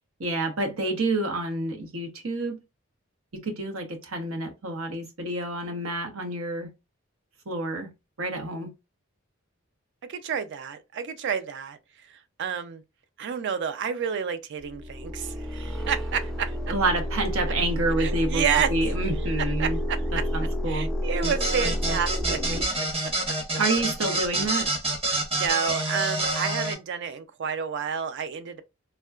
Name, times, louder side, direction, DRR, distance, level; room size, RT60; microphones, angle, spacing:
voice 1, 0.2-2.6 3.3-6.7 7.5-7.9 8.2-8.7 16.7-18.4 18.7-19.8 20.1-20.9 23.6-24.7, right 2 dB, 90° right, 0.9 m, -28 dB
voice 2, 10.1-11.8 12.4-12.8 13.2-16.6 18.0-18.7 19.6-20.2 20.7-23.1 25.1-28.6, right 7 dB, 60° right, 0.4 m, -30 dB
sound 1, 14.6-22.6, equal, 5° left, 0.4 m, -29 dB
sound 2, 21.2-26.7, right 2 dB, 30° right, 0.8 m, -27 dB
3.6 x 2.2 x 2.3 m
head